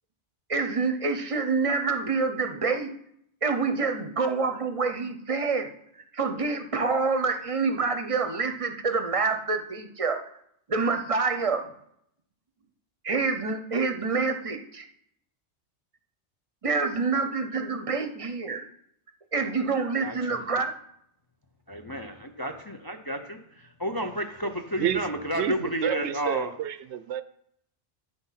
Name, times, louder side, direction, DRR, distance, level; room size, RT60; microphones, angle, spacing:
voice 1, 0.5-2.9 3.4-5.7 6.1-10.2 10.7-11.6 13.0-14.9 16.6-18.6 19.3-20.7, right 4 dB, 35° right, 0.7 m, -27 dB
voice 2, 21.7-23.4 23.8-26.5, equal, 25° left, 0.5 m, -31 dB
voice 3, 25.3-27.2, right 10 dB, 75° right, 0.9 m, -29 dB
9.2 x 6.0 x 5.7 m
omnidirectional pair, 1.2 m